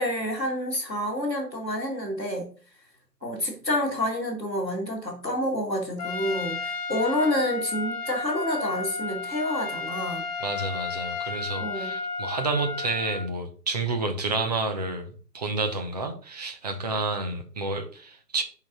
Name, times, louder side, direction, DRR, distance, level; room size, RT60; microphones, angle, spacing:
voice 1, 0.0-2.5 3.2-10.3 11.6-11.9, left 1 dB, 5° right, 0.7 m, -28 dB
Trumpet, 6.0-13.3, left 4 dB, 25° left, 1.4 m, -33 dB
voice 2, 10.4-18.4, right 3 dB, 25° right, 0.9 m, -30 dB
10.5 x 3.9 x 4.2 m
figure-of-eight pair, 145°, 49 cm